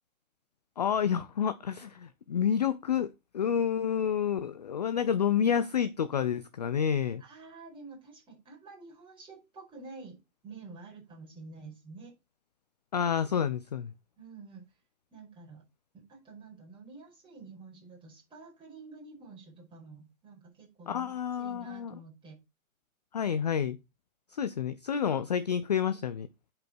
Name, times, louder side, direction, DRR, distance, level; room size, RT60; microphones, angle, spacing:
voice 1, 0.8-7.2 12.9-13.9 20.9-21.9 23.1-23.8 24.3-26.3, left 8 dB, 30° left, 0.4 m, -29 dB
voice 2, 7.2-10.2 10.4-12.1 14.2-14.6 15.1-15.6 15.9-21.1 21.4-22.4, right 3 dB, 10° right, 5.3 m, -49 dB
9.8 x 5.4 x 4.3 m
hypercardioid pair, 140°, 42 cm